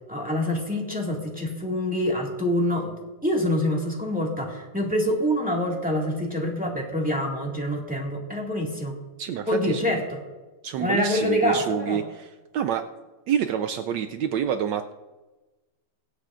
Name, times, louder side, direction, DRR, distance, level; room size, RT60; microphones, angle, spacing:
voice 1, 0.1-2.9 3.2-9.0 9.5-10.2 10.8-12.0, left 1 dB, 5° right, -3 dB, 1.7 m, -26 dB
voice 2, 9.2-10.0 10.6-12.8 13.3-14.9, right 8 dB, 85° right, 7 dB, 0.9 m, -28 dB
24.0 x 8.4 x 2.5 m, 1.2 s
omnidirectional pair, 2.4 m